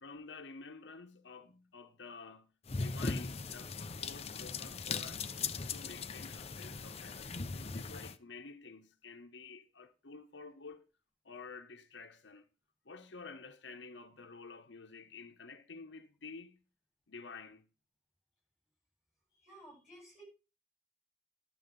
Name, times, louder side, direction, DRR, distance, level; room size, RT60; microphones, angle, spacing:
voice 1, 0.0-10.8 11.2-12.5 12.9-16.6 17.1-17.6, left 4 dB, 75° left, 0.9 m, -51 dB
sound 1, 2.7-8.2, left 4 dB, 35° left, 0.6 m, -39 dB
voice 2, 19.3-20.2, right 1 dB, 5° right, 7.8 m, -55 dB
11.5 x 7.8 x 5.2 m
head